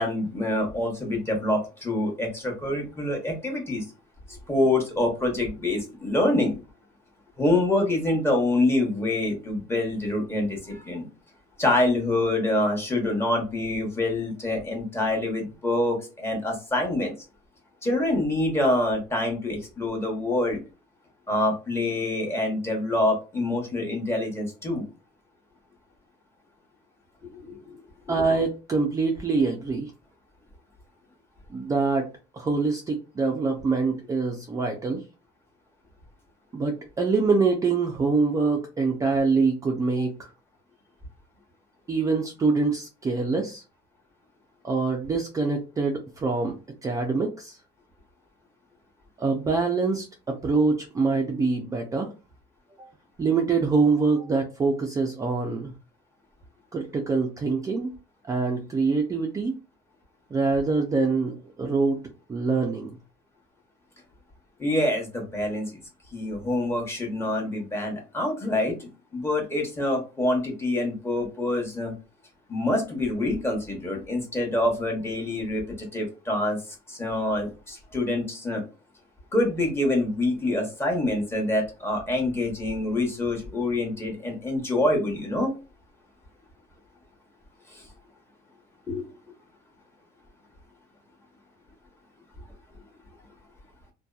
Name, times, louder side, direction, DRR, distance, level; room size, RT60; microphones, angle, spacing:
voice 1, 0.0-3.8 4.3-6.6 7.4-11.1 11.6-17.1 17.8-20.6 21.3-24.8 27.2-27.6 64.6-65.8 66.1-71.9 72.5-76.6 76.9-78.6 79.3-85.5 87.7-87.9 88.9-89.1, left 1 dB, 15° left, 0 dB, 0.9 m, -26 dB
voice 2, 28.1-29.9 31.5-35.0 36.5-40.3 41.9-43.6 44.6-46.5 46.8-47.6 49.2-52.1 52.8-52.9 53.2-55.7 56.7-57.9 58.3-59.5 60.3-62.0 62.3-62.9, right 4 dB, 20° right, 1 dB, 0.4 m, -25 dB
2.7 x 2.2 x 2.3 m, 0.31 s
cardioid pair, 130°, 17 cm